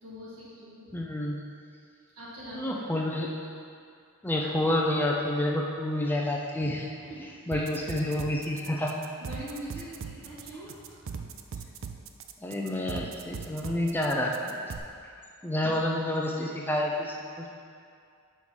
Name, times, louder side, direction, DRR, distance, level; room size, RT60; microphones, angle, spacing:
voice 1, 0.0-1.0 2.1-2.7 7.0-7.9 8.8-8.9 9.2-11.1, equal, 75° right, -9 dB, 1.8 m, -44 dB
voice 2, 0.9-1.4 2.6-3.3 4.2-6.9 7.5-9.0 12.4-14.8 15.4-17.5, left 1 dB, 10° left, -2 dB, 0.5 m, -29 dB
sound 1, 7.5-14.8, right 6 dB, 60° right, 0.4 m, -40 dB
5.5 x 4.8 x 6.2 m, 2.3 s
head